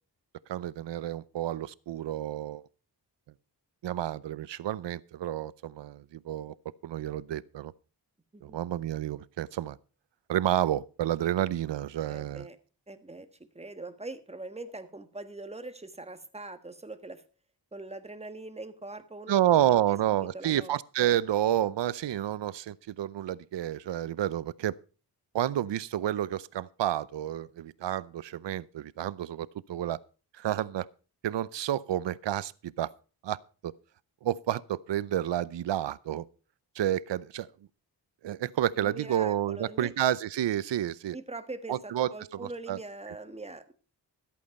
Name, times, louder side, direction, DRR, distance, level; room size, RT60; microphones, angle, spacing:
voice 1, 0.5-2.6 3.8-6.5 6.8-7.7 8.4-9.8 10.3-12.5 19.3-24.7 25.3-30.0 30.4-30.9 31.2-32.9 33.2-33.7 34.2-36.3 36.8-37.5 38.2-41.2 41.7-42.8, right 12 dB, 85° right, 0.7 m, -30 dB
voice 2, 12.1-12.6 12.9-13.3 13.5-17.2 17.7-21.2 38.7-39.9 41.1-43.7, right 2 dB, 15° right, 1.5 m, -43 dB
13.5 x 8.5 x 5.3 m
wide cardioid pair, 90°, 42 cm